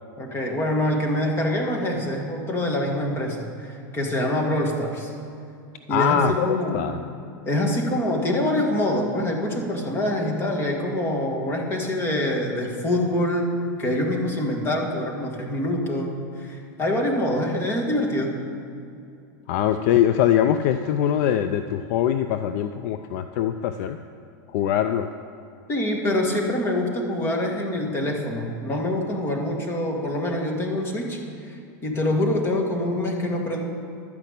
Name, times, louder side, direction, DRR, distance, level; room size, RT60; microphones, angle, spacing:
voice 1, 0.2-5.1 5.9-6.9 7.5-13.5 13.8-16.1 16.4-18.4 25.7-33.6, left 1 dB, 25° left, 1 dB, 1.8 m, -25 dB
voice 2, 5.9-7.0 19.5-24.0 24.5-25.1, left 10 dB, 55° left, 9 dB, 0.4 m, -22 dB
12.0 x 5.9 x 8.3 m, 2.6 s
supercardioid pair, 140°, 10 cm